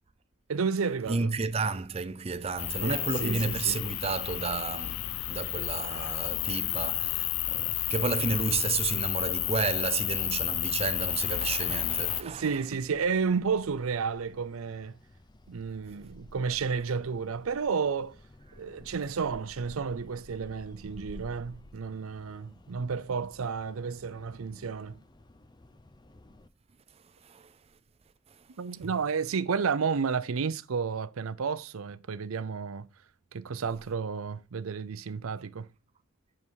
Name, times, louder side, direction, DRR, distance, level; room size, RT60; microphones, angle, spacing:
voice 1, 0.5-1.3 2.8-3.8 12.2-14.9 15.5-18.2 18.6-25.0 28.6-32.9 33.3-35.7, right 5 dB, 85° right, 0.5 m, -31 dB
voice 2, 1.1-12.5 27.2-27.5 28.8-28.9, right 4 dB, 30° right, 0.5 m, -32 dB
sound 1, 2.6-12.2, left 17 dB, 80° left, 0.3 m, -31 dB
sound 2, 8.4-26.5, left 1 dB, 20° left, 0.6 m, -54 dB
6.6 x 5.6 x 4.6 m
head